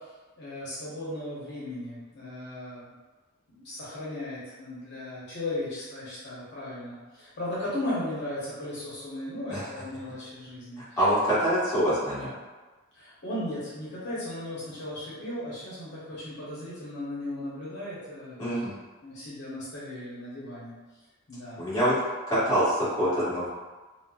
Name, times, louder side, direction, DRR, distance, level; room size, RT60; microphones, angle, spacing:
voice 1, 0.4-2.9 3.5-11.0 12.9-18.4 19.0-20.7 21.3-21.6, left 1 dB, 55° left, -9 dB, 0.9 m, -36 dB
voice 2, 11.0-12.3 18.4-18.7 21.6-22.0 22.3-23.5, equal, 15° left, -12 dB, 1.3 m, -25 dB
4.1 x 2.1 x 2.3 m, 1.2 s
head